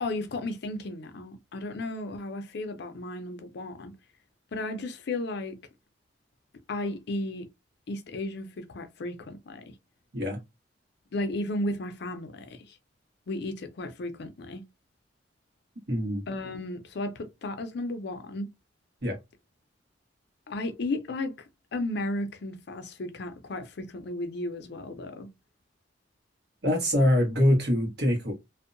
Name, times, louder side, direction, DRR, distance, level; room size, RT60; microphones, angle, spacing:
voice 1, 0.0-3.9 4.5-5.6 6.7-7.5 7.9-9.7 11.1-12.7 13.3-14.6 16.3-18.5 20.5-21.4 21.7-25.3, left 2 dB, 65° left, 0.5 m, -34 dB
voice 2, 15.9-16.2 19.0-19.2 26.6-28.3, left 1 dB, 60° right, 1.1 m, -24 dB
2.6 x 2.1 x 2.5 m
head